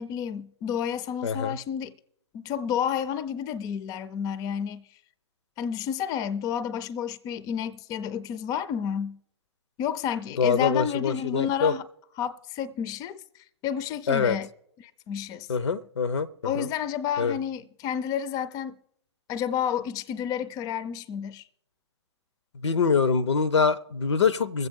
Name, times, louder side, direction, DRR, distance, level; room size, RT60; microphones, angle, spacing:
voice 1, 0.0-2.0 2.3-4.8 5.6-9.2 9.8-11.9 12.2-13.2 13.6-14.5 14.8-15.5 16.4-18.8 19.3-21.4, left 8 dB, 25° left, 0.4 m, -30 dB
voice 2, 1.2-1.6 10.4-11.7 14.1-14.4 15.5-16.7 17.2-17.4 22.6-24.7, left 5 dB, 75° left, 0.6 m, -24 dB
21.0 x 8.0 x 3.6 m
figure-of-eight pair, 110°, 15 cm